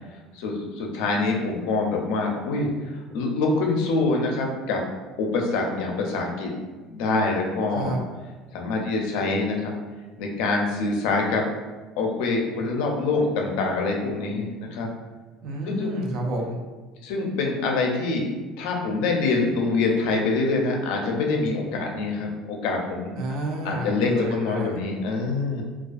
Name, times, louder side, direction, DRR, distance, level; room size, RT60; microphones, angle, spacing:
voice 1, 0.3-4.8 5.2-6.5 6.9-8.0 8.5-9.7 10.2-11.5 12.0-14.9 15.7-15.9 17.0-18.3 18.6-23.1 23.6-25.6, left 3 dB, 65° left, 1 dB, 0.4 m, -25 dB
voice 2, 15.4-16.6 23.2-24.8, right 1 dB, 45° right, 0 dB, 0.4 m, -30 dB
2.3 x 2.3 x 2.4 m, 1.3 s
cardioid pair, 180°, 0 cm